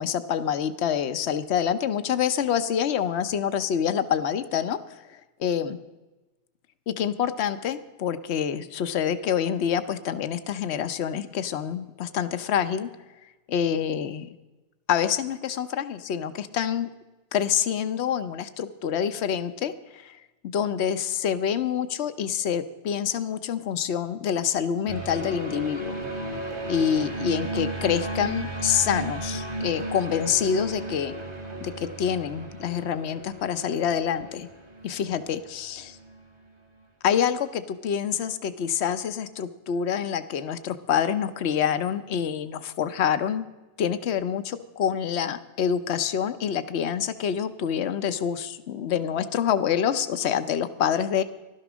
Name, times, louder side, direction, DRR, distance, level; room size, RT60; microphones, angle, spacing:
voice 1, 0.0-5.8 6.9-12.9 13.5-14.3 14.9-16.9 17.3-20.2 20.5-26.0 26.7-31.1 31.6-34.5 34.8-36.0 37.0-43.5 43.8-51.2, left 8 dB, 70° left, 11 dB, 1.0 m, -26 dB
sound 1, 24.9-36.2, right 1 dB, 50° right, 2.2 m, -34 dB
15.0 x 12.0 x 6.2 m, 1.1 s
omnidirectional pair, 1.2 m